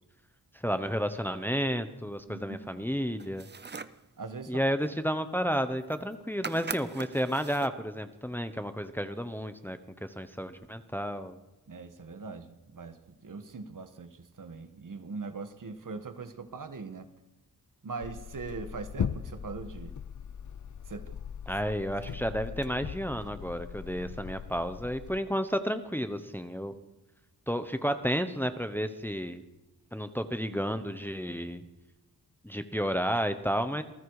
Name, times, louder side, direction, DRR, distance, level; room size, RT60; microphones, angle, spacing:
voice 1, 0.6-3.5 4.5-11.4 21.5-26.7 27.5-29.4 29.9-31.6 32.4-33.8, equal, 5° left, 9 dB, 1.0 m, -31 dB
voice 2, 2.3-2.8 4.2-4.6 11.7-17.1 17.8-19.9 20.9-21.0 22.0-22.2, right 4 dB, 55° right, 9 dB, 1.6 m, -41 dB
sound 1, 3.2-4.0 5.5-5.6 5.8-6.2 6.4-7.8, right 5 dB, 30° right, 0.6 m, -41 dB
sound 2, 18.0-25.2, left 8 dB, 50° left, 0.7 m, -39 dB
27.5 x 19.5 x 4.9 m, 0.96 s
wide cardioid pair, 170°, 38 cm